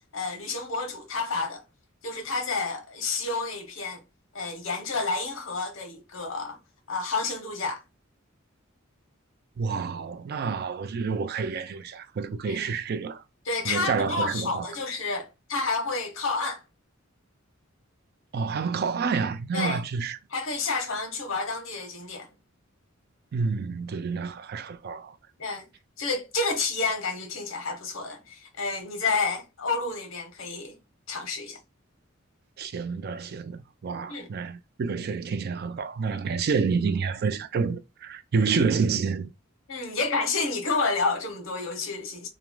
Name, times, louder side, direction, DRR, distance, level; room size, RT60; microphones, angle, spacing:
voice 1, 0.1-1.6 2.0-4.0 4.3-6.6 6.9-7.8 12.4-12.6 13.5-16.6 19.5-19.8 20.3-22.3 25.4-25.7 26.0-30.8 31.1-31.6 34.1-34.3 39.7-42.3, left 3 dB, 80° left, 0.9 m, -30 dB
voice 2, 9.6-13.2 13.6-14.7 18.3-20.2 23.3-25.2 32.6-39.3, right 5 dB, 50° right, 0.4 m, -28 dB
3.0 x 2.4 x 2.2 m
head